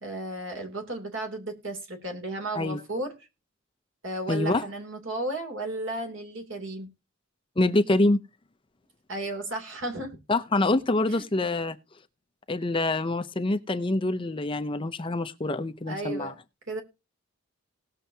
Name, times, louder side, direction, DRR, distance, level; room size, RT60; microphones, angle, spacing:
voice 1, 0.0-3.1 4.0-6.9 9.1-10.2 11.1-11.2 15.9-16.3 16.7-16.8, right 2 dB, 60° right, 2.9 m, -34 dB
voice 2, 4.3-4.6 7.6-8.2 10.3-11.8 12.5-16.3, left 2 dB, 25° left, 0.6 m, -25 dB
18.5 x 6.7 x 2.8 m
head